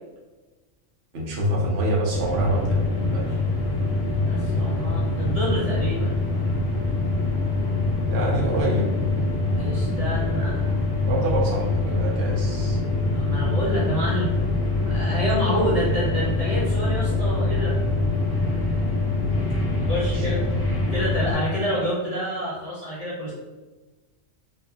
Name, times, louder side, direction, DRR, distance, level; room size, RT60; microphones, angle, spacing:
voice 1, 1.1-2.9 3.1-3.4 8.1-8.9 11.1-12.8 20.1-20.5, right 1 dB, 65° right, -4 dB, 0.9 m, -26 dB
sound 1, 2.1-21.3, left 2 dB, 25° left, 0.6 m, -24 dB
voice 2, 4.2-6.1 9.5-10.7 13.1-14.3 14.9-17.8 19.9-20.5 20.9-23.3, equal, 35° right, -9 dB, 0.8 m, -28 dB
2.6 x 2.6 x 2.3 m, 1.2 s
omnidirectional pair, 1.3 m